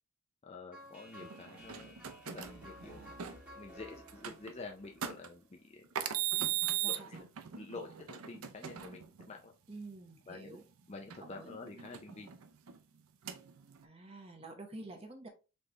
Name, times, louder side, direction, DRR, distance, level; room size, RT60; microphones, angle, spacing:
voice 1, 0.4-2.0 2.2-3.0 3.5-5.9 6.4-6.5 6.8-7.2 7.5-9.5 10.3-10.6 10.9-12.3, left 3 dB, 30° left, 2 dB, 0.4 m, -48 dB
sound 1, 0.7-5.7, equal, 5° right, 1.7 m, -54 dB
sound 2, 1.2-3.4 4.1-4.5 5.0-5.3 6.0-9.3 11.1-12.8 13.3-13.8, right 11 dB, 85° right, 0.5 m, -38 dB
voice 2, 6.8-7.3 9.7-10.6 11.2-11.6 13.8-15.3, right 2 dB, 25° right, 3 dB, 0.7 m, -49 dB
4.2 x 3.2 x 3.2 m, 0.31 s
head